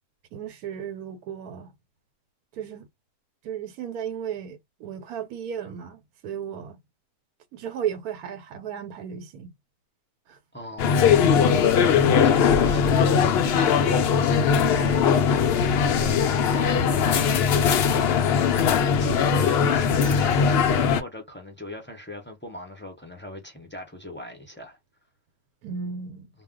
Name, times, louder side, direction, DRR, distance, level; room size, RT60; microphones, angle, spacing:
voice 1, 0.3-1.7 2.5-2.9 3.4-6.8 7.5-9.5 10.3-10.4 11.3-11.7 25.6-26.3, right 8 dB, 80° right, 1.1 m, -35 dB
voice 2, 10.5-11.0 11.8-15.0 15.8-17.1 18.5-24.8, left 1 dB, 15° left, 0.4 m, -38 dB
sound 1, 10.8-21.0, left 7 dB, 75° left, 0.6 m, -20 dB
2.4 x 2.2 x 3.6 m
omnidirectional pair, 1.6 m